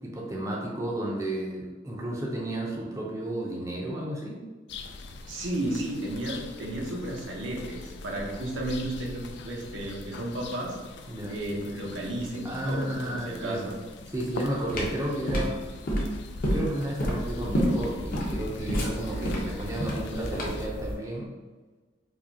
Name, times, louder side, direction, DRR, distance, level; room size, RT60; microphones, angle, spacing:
voice 1, 0.0-4.4 11.1-11.3 12.4-13.7 14.1-15.5 16.5-21.3, right 1 dB, 15° right, -3 dB, 0.5 m, -32 dB
sound 1, 4.7-20.7, left 3 dB, 65° left, 0.3 m, -43 dB
voice 2, 5.3-10.8 11.3-13.7, right 1 dB, 85° right, -1 dB, 0.8 m, -33 dB
sound 2, 14.2-20.7, equal, 50° left, 0.8 m, -28 dB
sound 3, 16.0-21.0, equal, 85° left, 0.8 m, -40 dB
4.7 x 2.2 x 2.7 m, 1.3 s
head